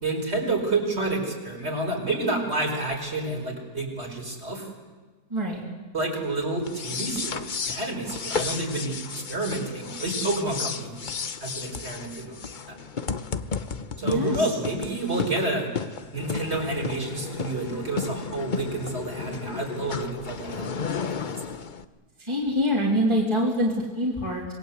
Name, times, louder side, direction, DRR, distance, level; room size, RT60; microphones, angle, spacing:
voice 1, 0.0-4.7 5.9-11.0 11.4-12.4 12.7-12.8 14.0-15.7 16.1-20.7 21.0-21.3, right 2 dB, 40° right, 0 dB, 5.3 m, -29 dB
sound 1, 6.6-21.8, left 5 dB, 40° left, 0.8 m, -33 dB
voice 2, 14.0-14.5 22.2-24.5, equal, 15° right, -3 dB, 3.1 m, -25 dB
26.0 x 21.0 x 8.2 m, 1.4 s
omnidirectional pair, 1.7 m